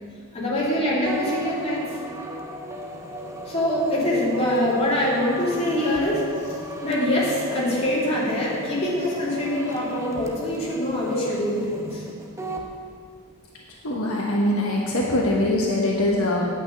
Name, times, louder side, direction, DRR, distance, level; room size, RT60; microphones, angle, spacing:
voice 1, 0.3-2.0 3.5-6.5 6.8-12.0, left 1 dB, 30° left, -6 dB, 2.8 m, -24 dB
sound 1, 1.1-12.7, right 1 dB, 15° right, 0.9 m, -36 dB
voice 2, 13.8-16.5, left 1 dB, 70° left, -2 dB, 1.2 m, -22 dB
8.9 x 5.9 x 8.1 m, 2.1 s
head